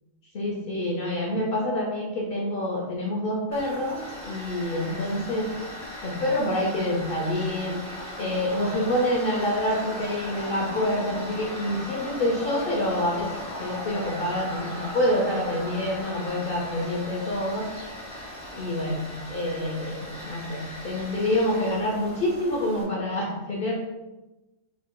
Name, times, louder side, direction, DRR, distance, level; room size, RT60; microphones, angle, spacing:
voice 1, 0.3-5.5 6.0-7.8 8.2-13.3 13.6-17.7 18.5-23.7, left 1 dB, 55° left, -2 dB, 0.7 m, -27 dB
Tools, 3.5-22.8, left 1 dB, 5° left, 0.7 m, -38 dB
4.9 x 3.6 x 2.2 m, 1.0 s
omnidirectional pair, 1.4 m